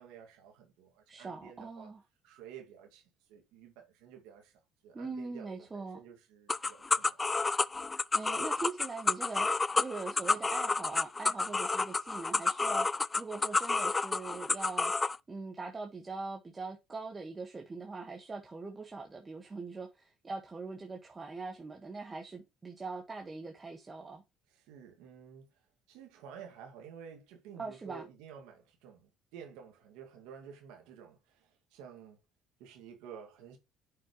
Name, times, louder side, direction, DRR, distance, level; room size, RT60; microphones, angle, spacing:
voice 1, 0.0-1.9 2.2-7.2 24.5-25.5 25.9-32.2 32.6-33.6, right 7 dB, 85° right, 2.1 m, -52 dB
voice 2, 1.1-2.0 4.9-6.0 8.1-9.5 9.8-14.9 15.3-24.2 27.6-28.1, right 3 dB, 25° right, 1.5 m, -42 dB
sound 1, 6.5-15.2, left 3 dB, 20° left, 0.3 m, -30 dB
10.5 x 6.1 x 3.1 m
cardioid pair, 95°, 0 cm